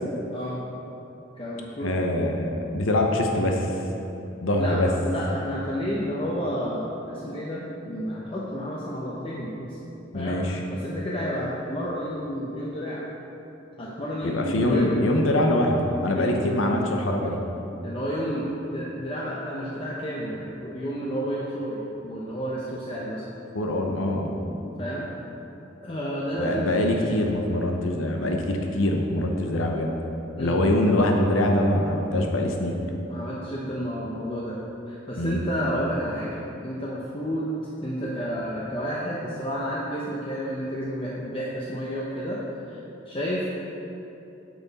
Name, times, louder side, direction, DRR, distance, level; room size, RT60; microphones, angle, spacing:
voice 1, 0.3-0.7 1.4-1.9 4.6-9.8 10.1-13.0 13.8-14.9 16.1-16.4 17.8-23.2 24.8-25.1 25.8-27.1 30.4-30.6 33.1-34.6 34.9-37.5 37.8-42.4 42.7-42.8 43.1-43.5, equal, 30° left, -5 dB, 0.7 m, -31 dB
voice 2, 1.8-3.7 4.4-4.9 10.1-10.6 14.2-17.4 23.5-24.3 26.4-29.9 30.4-32.7 35.2-35.4, left 1 dB, 85° left, 2 dB, 0.8 m, -24 dB
9.3 x 6.1 x 4.1 m, 3.0 s
head